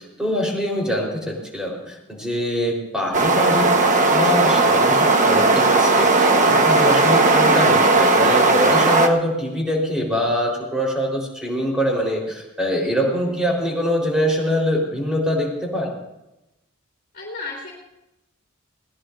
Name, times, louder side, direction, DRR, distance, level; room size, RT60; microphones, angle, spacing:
voice 1, 0.0-15.9, equal, 5° right, -2 dB, 4.2 m, -24 dB
sound 1, 3.1-9.1, right 3 dB, 35° right, 1.3 m, -16 dB
voice 2, 13.0-13.3 17.1-17.7, left 2 dB, 50° left, -4 dB, 3.3 m, -33 dB
21.5 x 18.0 x 2.7 m, 0.94 s
head